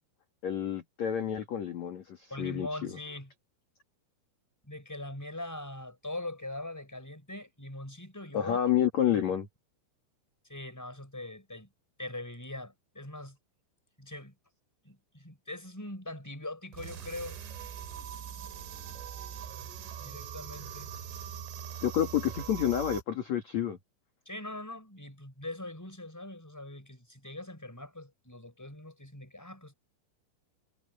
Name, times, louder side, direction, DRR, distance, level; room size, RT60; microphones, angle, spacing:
voice 1, 0.4-2.7 8.3-9.5 21.8-23.8, left 10 dB, 50° left, 2.3 m, -29 dB
voice 2, 2.3-3.3 4.6-8.6 9.0-9.2 10.5-11.7 12.0-13.4 14.0-14.3 14.8-17.4 20.0-20.9 24.2-29.7, left 1 dB, 5° left, 4.9 m, -42 dB
sound 1, 16.7-23.0, right 9 dB, 75° right, 5.5 m, -42 dB
omnidirectional pair, 5.8 m